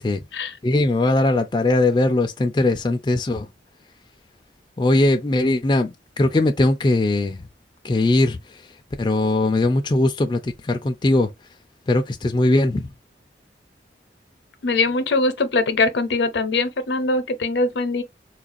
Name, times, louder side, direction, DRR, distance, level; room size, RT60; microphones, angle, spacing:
voice 1, 0.6-3.5 4.8-7.4 7.8-8.4 9.0-11.3 11.9-12.9, left 2 dB, 25° left, 0.3 m, -20 dB
voice 2, 14.6-18.0, left 3 dB, 80° left, 0.6 m, -22 dB
4.2 x 2.4 x 2.5 m
head